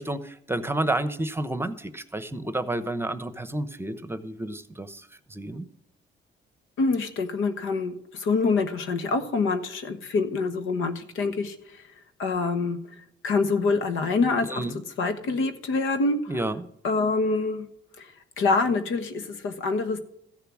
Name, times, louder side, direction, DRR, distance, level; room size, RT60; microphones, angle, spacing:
voice 1, 0.0-5.7 14.5-14.8 16.3-16.6, right 1 dB, 10° right, 12 dB, 0.9 m, -30 dB
voice 2, 6.8-11.9 12.2-12.8 13.2-14.6 15.0-16.3 16.8-17.7 18.0-20.0, left 3 dB, 85° left, 9 dB, 1.4 m, -26 dB
14.5 x 6.8 x 6.2 m, 0.75 s
cardioid pair, 90°, 20 cm